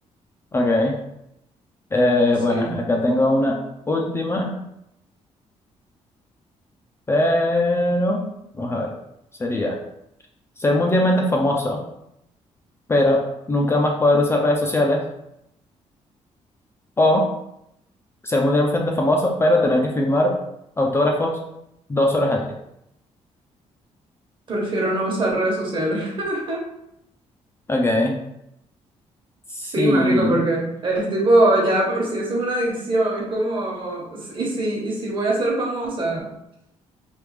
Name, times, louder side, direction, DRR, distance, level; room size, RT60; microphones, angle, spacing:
voice 1, 0.5-0.9 1.9-3.6 3.9-4.5 7.1-8.2 8.6-8.9 9.4-9.8 10.6-11.8 12.9-13.2 13.5-15.0 17.0-17.2 18.2-20.3 20.8-21.4 21.9-22.5 27.7-28.2 29.5-30.4, left 1 dB, 20° left, 0 dB, 0.4 m, -20 dB
voice 2, 2.5-2.8 24.5-26.6 29.7-36.3, right 1 dB, 45° right, -2 dB, 1.1 m, -22 dB
3.4 x 2.3 x 3.2 m, 0.81 s
cardioid pair, 115°, 12 cm